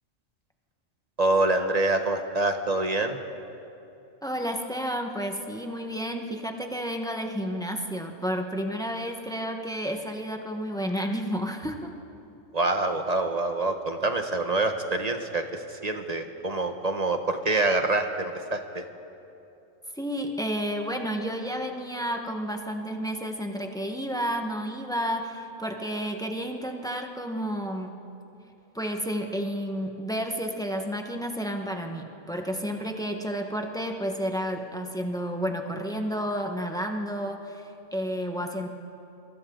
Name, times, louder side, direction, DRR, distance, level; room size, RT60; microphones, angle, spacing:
voice 1, 1.2-3.2 12.5-18.8, right 2 dB, 30° right, 6 dB, 1.3 m, -26 dB
voice 2, 4.2-12.0 19.9-28.0 28.7-38.7, equal, 5° left, 3 dB, 1.4 m, -31 dB
29.0 x 24.0 x 3.9 m, 2.8 s
omnidirectional pair, 1.3 m